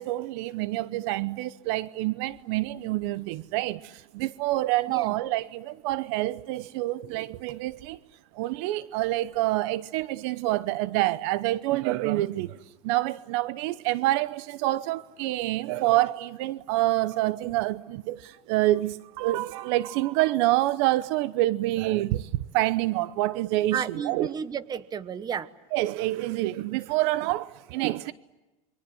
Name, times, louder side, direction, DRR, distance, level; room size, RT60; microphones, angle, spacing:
voice 1, 0.0-8.0 8.3-12.6 12.8-23.8 24.0-24.3 25.7-28.1, right 17 dB, 70° right, 0.8 m, -27 dB
voice 2, 23.7-25.5, right 7 dB, 25° right, 1.2 m, -32 dB
29.5 x 23.5 x 7.8 m
supercardioid pair, 130°, 15 cm